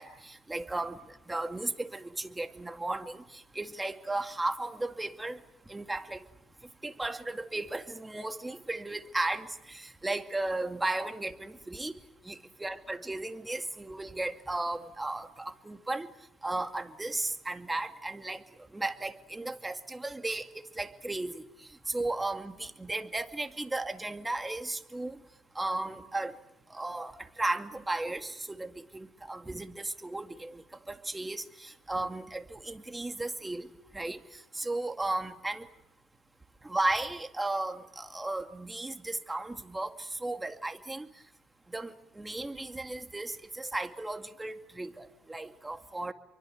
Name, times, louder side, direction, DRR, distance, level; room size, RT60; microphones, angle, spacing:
voice 1, 0.0-5.4 5.7-6.2 6.8-16.1 16.4-18.4 18.7-25.2 25.5-26.4 26.7-33.7 33.9-35.7 36.6-41.1 41.7-46.1, right 2 dB, 15° right, 7 dB, 2.3 m, -35 dB
29.0 x 24.0 x 7.9 m, 0.86 s
cardioid pair, 90°, 0 cm